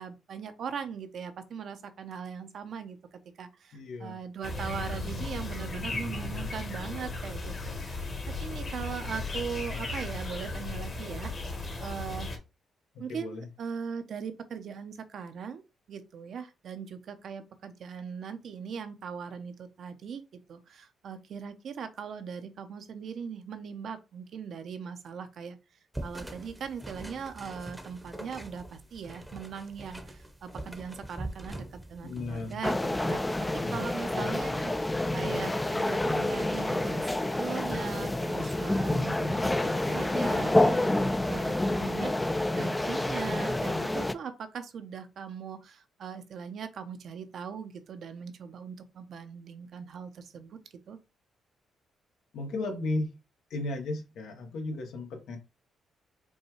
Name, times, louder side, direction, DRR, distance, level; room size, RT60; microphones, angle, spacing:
voice 1, 0.0-11.3 11.8-12.3 13.0-15.6 15.9-25.6 26.0-50.6 50.9-51.0, right 6 dB, 65° right, 0.7 m, -40 dB
voice 2, 3.7-4.2 13.1-13.5 32.0-32.6 33.6-33.8 34.1-34.3 52.3-53.1 53.5-55.4, left 2 dB, 75° left, 1.1 m, -34 dB
sound 1, 4.4-12.4, left 2 dB, 45° left, 1.4 m, -36 dB
sound 2, 25.9-34.2, right 1 dB, 5° right, 0.8 m, -44 dB
sound 3, 32.6-44.1, left 1 dB, 15° left, 0.4 m, -28 dB
5.3 x 2.3 x 3.1 m
cardioid pair, 80°, 0 cm